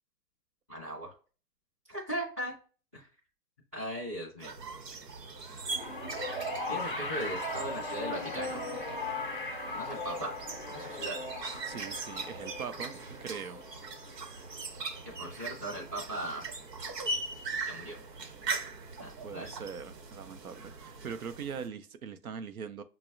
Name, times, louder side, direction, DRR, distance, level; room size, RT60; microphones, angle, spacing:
voice 1, 0.7-1.1 1.9-2.5 2.9-3.1 3.7-4.5 6.7-8.6 9.7-10.3 10.7-11.1 15.2-16.4 17.7-18.0 18.5-18.6 19.0-19.5, right 1 dB, 10° right, 0.6 m, -38 dB
sound 1, 4.4-21.7, right 3 dB, 80° right, 0.9 m, -41 dB
sound 2, 5.7-16.1 17.2-17.3, left 2 dB, 40° left, 0.4 m, -39 dB
voice 2, 11.6-13.6 19.2-22.8, right 6 dB, 60° right, 0.5 m, -41 dB
5.8 x 2.0 x 2.4 m
hypercardioid pair, 160°, 48 cm